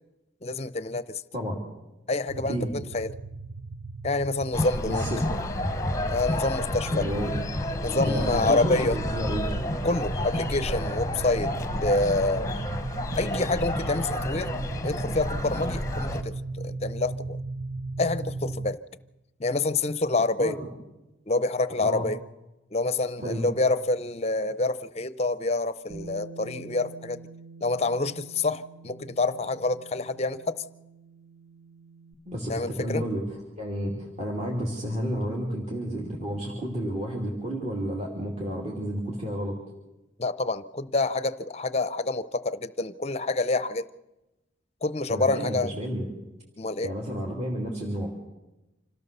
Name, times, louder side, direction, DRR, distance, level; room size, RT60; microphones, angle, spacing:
voice 1, 0.4-1.2 2.1-3.2 4.0-5.2 6.1-7.1 7.8-9.0 9.8-12.5 13.2-14.5 14.8-17.4 18.0-18.8 19.4-20.6 21.3-22.2 22.7-27.2 27.6-30.6 32.5-33.1 40.2-43.9 44.8-45.7 46.6-46.9, left 2 dB, 30° left, 16 dB, 0.6 m, -27 dB
sound 1, 2.3-18.7, right 3 dB, 60° right, 0.9 m, -37 dB
sound 2, 4.5-16.2, left 1 dB, 15° left, 1.0 m, -30 dB
voice 2, 4.9-5.2 6.9-7.3 7.9-9.5 20.4-20.7 21.8-22.1 23.2-23.5 32.3-39.6 45.1-46.1 46.8-48.1, equal, 30° right, -1 dB, 2.8 m, -31 dB
Bass guitar, 25.9-32.1, right 3 dB, 90° right, 1.8 m, -47 dB
26.0 x 16.5 x 6.8 m, 1.0 s
head